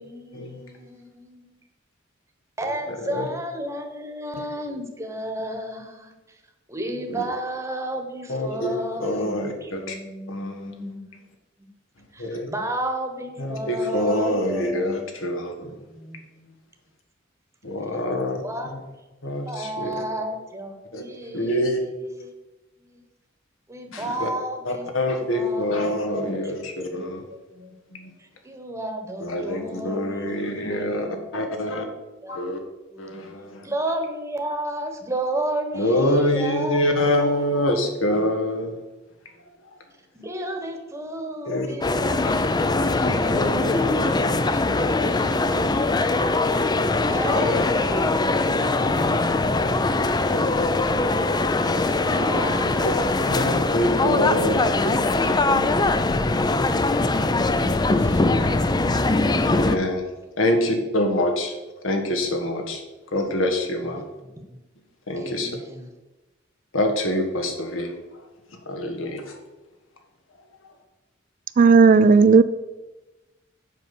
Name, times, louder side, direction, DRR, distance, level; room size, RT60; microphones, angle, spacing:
voice 1, 0.0-1.6 2.6-6.4 6.7-11.0 12.1-15.0 15.6-16.2 18.2-18.8 19.5-22.3 22.8-23.0 23.7-24.9 25.3-27.0 27.5-27.7 28.2-32.4 32.9-33.1 33.6-37.7 40.1-42.5 42.8-46.0 47.1-51.2 51.8-55.0 56.1-59.0 63.8-64.6 65.2-65.9, right 1 dB, 15° right, 3 dB, 1.2 m, -34 dB
voice 2, 8.3-8.7 9.0-10.0 10.3-10.7 12.2-12.5 13.4-15.7 17.6-18.4 19.2-20.0 20.9-21.0 21.3-21.8 23.9-24.3 24.6-27.4 27.9-28.1 29.2-31.1 31.3-31.8 32.3-32.6 33.0-33.7 35.7-38.8 41.4-41.7 43.0-44.4 45.0-45.2 47.2-47.6 48.7-49.2 50.3-50.7 52.1-52.4 52.8-53.0 53.3-54.6 54.9-55.1 55.5-55.8 59.4-60.0 60.4-61.5 61.8-62.8 63.1-64.0 65.1-65.5 66.7-67.9 68.6-69.3, left 1 dB, 80° left, 3 dB, 1.6 m, -26 dB
sound 1, 41.8-59.8, left 2 dB, 20° left, 0.4 m, -22 dB
voice 3, 71.6-72.4, right 5 dB, 45° right, 14 dB, 0.3 m, -13 dB
7.4 x 5.7 x 6.9 m, 1.1 s
head